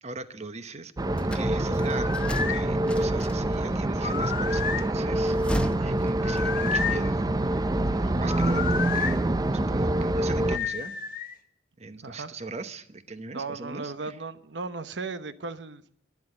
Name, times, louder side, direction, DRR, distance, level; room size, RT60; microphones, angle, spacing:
voice 1, 0.0-0.9 1.2-5.4 5.8-9.3 9.7-10.9 11.8-14.2, right 3 dB, 40° right, 0.9 m, -39 dB
sound 1, 1.0-10.6, right 1 dB, 20° right, 0.5 m, -26 dB
sound 2, 1.2-3.7 5.1-6.9, equal, 5° left, 0.9 m, -35 dB
sound 3, 1.8-2.6 4.0-4.9 6.2-7.1 8.2-9.2 10.5-11.4, left 6 dB, 50° left, 1.2 m, -31 dB
voice 2, 8.0-8.3 12.0-12.3 13.3-15.8, right 4 dB, 75° right, 1.0 m, -36 dB
12.0 x 11.0 x 9.8 m
head